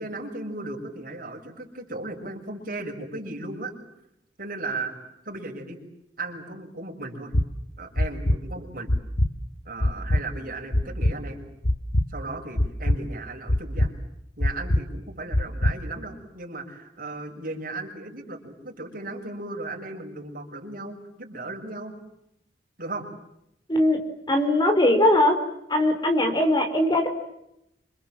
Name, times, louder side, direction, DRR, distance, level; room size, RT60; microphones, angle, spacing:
voice 1, 0.0-3.7 4.4-4.9 5.2-5.8 6.2-7.3 7.8-8.9 9.6-11.4 12.1-13.9 14.4-21.9 22.8-23.1, right 2 dB, 55° right, 2 dB, 6.6 m, -36 dB
sound 1, 7.3-7.4 8.0-8.4 8.9-9.3 9.8-10.2 10.7-11.1 11.6-12.0 12.6-13.0 13.5-13.9 14.4-14.8 15.3-15.7, left 1 dB, 60° left, 1.8 m, -21 dB
voice 2, 24.3-25.4 25.7-27.1, left 1 dB, 25° left, 6 dB, 4.6 m, -20 dB
28.5 x 26.5 x 7.7 m, 0.82 s
head